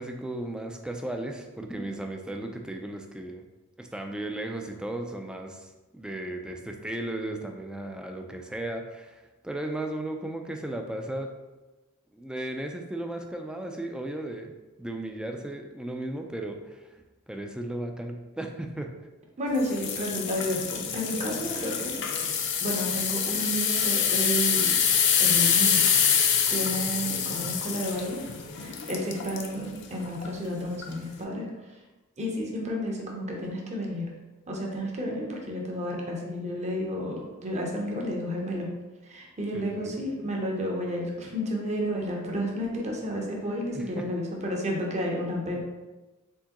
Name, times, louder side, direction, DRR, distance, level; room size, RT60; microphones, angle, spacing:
voice 1, 0.0-3.4 3.8-11.3 12.1-14.5 14.8-17.0 17.3-18.9 39.5-39.9 43.7-44.1, right 1 dB, 5° right, 4 dB, 0.3 m, -35 dB
voice 2, 19.4-22.0 22.6-24.7 25.2-25.9 26.5-28.2 28.6-31.5 32.2-34.1 34.5-38.7 39.1-45.6, equal, 30° right, -1 dB, 0.7 m, -31 dB
sound 1, 19.6-29.5 30.0-30.3 30.8-30.9, left 7 dB, 55° left, 0.5 m, -26 dB
4.5 x 3.5 x 2.9 m, 1.1 s
head